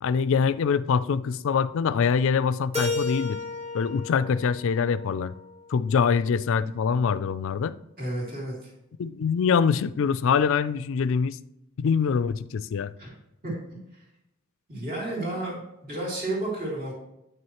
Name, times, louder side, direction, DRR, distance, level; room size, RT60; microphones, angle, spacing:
voice 1, 0.0-3.4 3.7-5.3 5.7-7.7 9.0-11.4 11.8-12.9, left 6 dB, 60° left, 16 dB, 0.4 m, -24 dB
Keyboard (musical), 2.7-5.6, left 3 dB, 25° right, 1.4 m, -33 dB
voice 2, 8.0-8.7 13.0-13.1 13.4-14.0 14.7-16.9, right 1 dB, 45° right, -4 dB, 2.8 m, -32 dB
9.0 x 6.3 x 3.0 m, 0.85 s
head